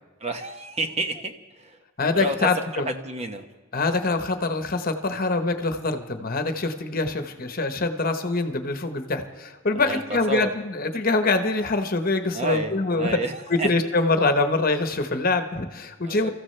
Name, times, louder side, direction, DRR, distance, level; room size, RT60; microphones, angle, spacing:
voice 1, 0.2-1.8 2.1-3.4 9.7-10.5 12.3-13.7 16.0-16.3, right 2 dB, 30° right, 6 dB, 1.0 m, -30 dB
voice 2, 2.0-2.9 3.7-13.1 13.5-16.3, left 3 dB, 45° left, 7 dB, 1.1 m, -24 dB
29.5 x 14.5 x 3.3 m, 1.3 s
head